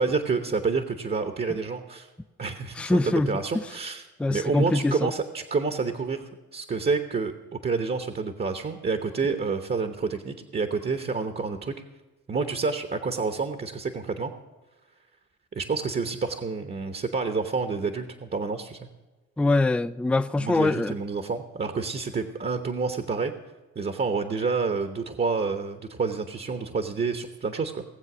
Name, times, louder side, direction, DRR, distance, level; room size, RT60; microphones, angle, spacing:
voice 1, 0.0-2.1 2.4-4.0 4.3-7.3 7.6-11.8 12.3-14.3 15.5-18.8 20.4-23.3 23.8-27.8, right 4 dB, 35° right, 1.0 m, -28 dB
voice 2, 2.8-3.3 3.5-3.6 4.2-5.1 19.4-21.0, left 2 dB, 5° left, 0.3 m, -23 dB
18.0 x 7.4 x 6.1 m
cardioid pair, 90°, 30 cm